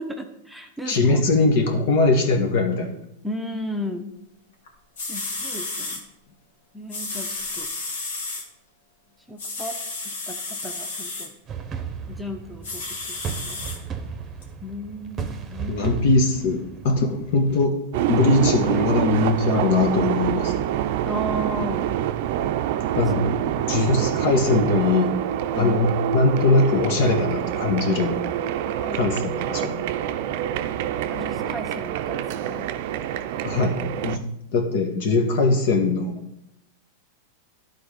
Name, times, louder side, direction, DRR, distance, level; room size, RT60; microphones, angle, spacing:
voice 1, 0.0-1.2 3.2-4.1 5.1-6.0 6.7-7.7 9.3-9.8 10.3-11.3 12.1-13.7 14.6-16.0 21.0-21.8 25.5-25.9 28.8-29.0 31.1-32.7, equal, ahead, 3 dB, 0.8 m, -34 dB
voice 2, 0.8-2.9 15.7-17.8 18.1-20.5 22.9-23.4 23.7-25.2 25.6-28.2 28.9-29.8 33.4-34.3 34.5-36.2, left 3 dB, 60° left, 4 dB, 1.6 m, -21 dB
sound 1, 4.7-4.8 5.0-6.0 6.9-8.4 9.4-11.3 12.6-13.8 14.4-14.5, left 3 dB, 75° left, 2.1 m, -32 dB
sound 2, 11.5-17.7, right 6 dB, 25° right, 0.9 m, -35 dB
sound 3, 17.9-34.2, right 11 dB, 60° right, 0.5 m, -26 dB
11.5 x 4.0 x 5.2 m, 0.81 s
hypercardioid pair, 120°, 0 cm